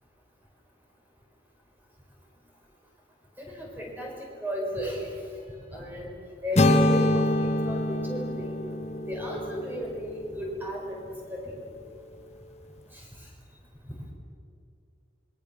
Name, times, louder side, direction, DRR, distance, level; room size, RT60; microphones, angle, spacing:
voice 1, 3.4-5.2 5.7-6.2 6.4-8.6 9.1-11.5 12.9-13.0, left 1 dB, 10° right, -2 dB, 5.2 m, -34 dB
sound 1, 6.6-10.6, left 1 dB, 35° left, 1.2 m, -25 dB
27.0 x 22.0 x 7.1 m, 2.4 s
head